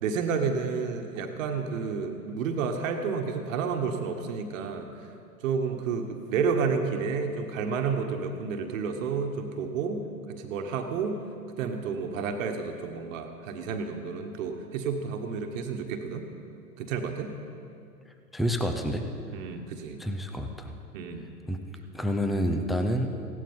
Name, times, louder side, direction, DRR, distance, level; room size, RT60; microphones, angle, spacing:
voice 1, 0.0-4.9 5.4-10.0 10.4-11.2 11.6-16.3 16.8-17.3 19.3-20.0 20.9-21.3, right 5 dB, 55° right, 5 dB, 1.4 m, -30 dB
voice 2, 18.3-19.0 20.0-20.7 21.5-21.6 21.9-23.1, equal, ahead, 5 dB, 0.6 m, -28 dB
16.5 x 11.5 x 5.5 m, 2.5 s
hypercardioid pair, 110°, 46 cm